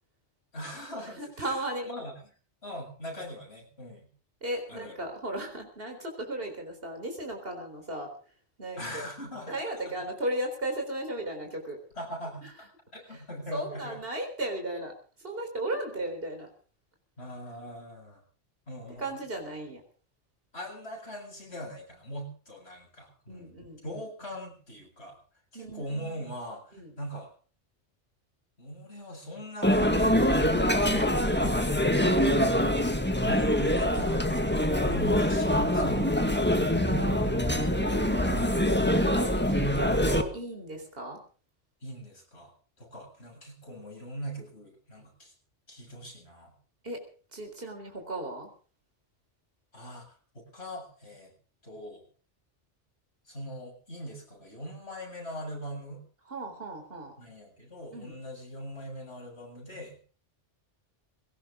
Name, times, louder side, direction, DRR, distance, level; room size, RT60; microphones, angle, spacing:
voice 1, 0.5-2.1 2.6-4.1 4.7-4.9 8.8-9.5 9.9-10.0 11.9-12.7 12.9-14.0 17.2-18.2 18.7-19.1 20.5-23.5 23.8-25.2 25.5-27.3 28.6-32.1 33.2-34.3 34.9-36.5 41.8-42.5 42.8-45.3 45.7-46.5 49.7-51.3 51.6-52.0 53.3-56.0 57.2-60.0, equal, 60° left, 0 dB, 7.9 m, -41 dB
voice 2, 1.2-1.9 4.4-8.1 8.6-9.1 9.5-11.8 12.4-12.5 13.1-13.2 13.5-14.9 15.2-16.5 19.0-19.8 23.3-24.0 25.5-26.3 26.7-27.0 36.8-38.5 38.8-41.2 46.8-47.0 47.3-48.5 56.3-57.1 57.9-58.2, right 1 dB, 50° right, 3 dB, 4.3 m, -36 dB
sound 1, 29.6-40.2, equal, 10° left, 1.7 m, -24 dB
21.0 x 18.0 x 3.7 m, 0.40 s
omnidirectional pair, 1.2 m